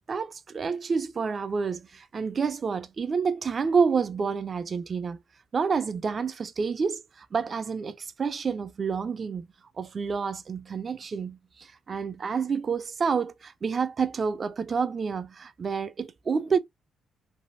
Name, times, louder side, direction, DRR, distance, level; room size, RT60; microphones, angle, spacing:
voice 1, 0.1-5.2 5.5-9.5 9.8-16.6, right 5 dB, 45° right, 0.4 m, -29 dB
3.3 x 2.1 x 2.4 m
cardioid pair, 75°, 0 cm